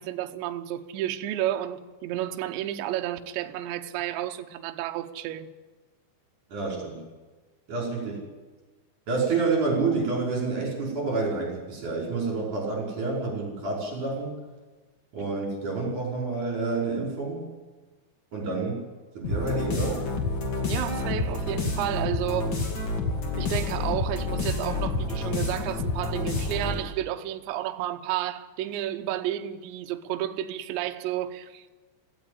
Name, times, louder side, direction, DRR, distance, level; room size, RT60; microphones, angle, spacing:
voice 1, 0.0-5.5 20.6-22.6 23.4-31.7, right 12 dB, 75° right, 3.0 m, -31 dB
voice 2, 6.5-7.0 7.7-8.2 9.1-14.4 15.1-17.5 18.3-18.8 19.1-20.0, right 4 dB, 40° right, 6.3 m, -28 dB
sound 1, 19.2-26.9, left 3 dB, 35° left, 2.0 m, -29 dB
17.0 x 15.5 x 9.8 m
omnidirectional pair, 5.7 m